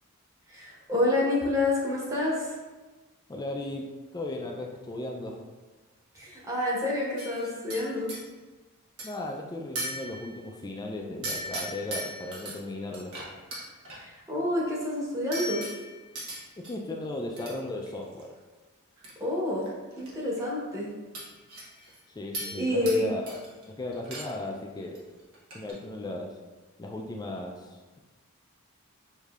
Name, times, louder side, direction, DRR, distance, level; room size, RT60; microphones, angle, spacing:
voice 1, 0.5-2.6 6.1-8.1 14.0-15.6 19.2-19.7 20.0-20.9 22.6-23.0, left 1 dB, 15° right, -6 dB, 0.9 m, -28 dB
voice 2, 3.3-5.4 9.0-13.2 16.6-18.3 22.1-23.4 23.7-25.0 25.5-26.4 26.8-28.0, left 1 dB, 15° left, 1 dB, 0.3 m, -36 dB
sound 1, 7.2-8.2 9.0-9.3 9.8-10.5 11.2-12.5 12.9-14.0 15.3-16.7 17.4-17.5 17.9-18.2 19.0-19.1 19.5-20.1 20.4-20.5 21.1-22.0 22.3-23.0 23.3-23.6 23.9-24.5 24.8-25.0 25.3-25.7, right 1 dB, 75° right, 1.1 m, -38 dB
6.5 x 2.7 x 2.4 m, 1.2 s
head